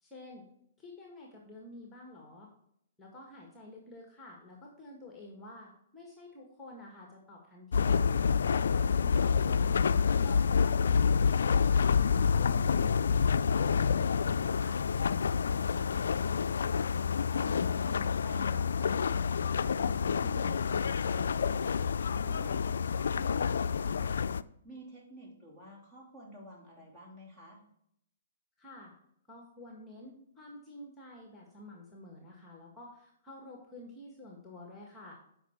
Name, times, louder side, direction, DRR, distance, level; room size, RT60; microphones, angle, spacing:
voice 1, 0.0-0.4 0.8-2.5 3.0-8.1 8.5-9.9 10.2-14.8 28.6-28.9 29.3-35.2, left 1 dB, 10° left, -1 dB, 1.7 m, -50 dB
sound 1, 7.7-24.4, left 6 dB, 75° left, 0.3 m, -28 dB
voice 2, 17.3-21.8 22.1-24.1 24.6-27.6, equal, 20° right, -2 dB, 2.8 m, -50 dB
8.1 x 5.5 x 4.5 m, 0.73 s
hypercardioid pair, 135°, 0 cm